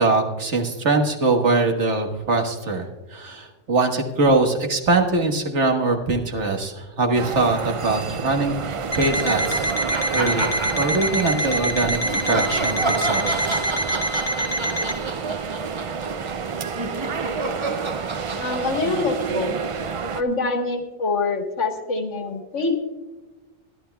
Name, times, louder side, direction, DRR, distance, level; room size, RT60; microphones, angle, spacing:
voice 1, 0.0-8.6 9.0-9.7 10.1-13.2, right 3 dB, 75° right, 3 dB, 1.7 m, -22 dB
sound 1, 7.1-20.2, right 5 dB, 60° right, 0.3 m, -29 dB
Alarm, 8.9-15.0, equal, 25° left, 0.8 m, -26 dB
sound 2, 9.9-11.5 12.1-20.3, right 3 dB, 30° right, 0.7 m, -31 dB
voice 2, 18.4-19.5 20.1-22.8, left 3 dB, 85° left, 3 dB, 1.8 m, -25 dB
22.0 x 11.5 x 2.3 m, 1.2 s
omnidirectional pair, 1.2 m